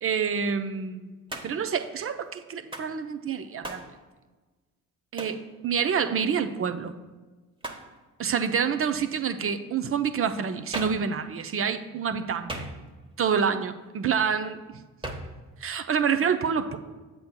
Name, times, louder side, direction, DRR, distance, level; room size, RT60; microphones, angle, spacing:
voice 1, 0.0-1.2 1.4-3.8 5.1-6.9 8.2-12.7 13.2-14.6 15.6-16.8, right 6 dB, 35° right, 9 dB, 0.5 m, -27 dB
Hands, 1.3-1.7 2.7-3.0 3.6-3.9 5.2-5.4 7.6-7.9 10.7-11.1 12.5-13.1 15.0-15.4, right 1 dB, 10° right, 1.1 m, -37 dB
9.2 x 7.7 x 2.2 m, 1.3 s
hypercardioid pair, 45°, 42 cm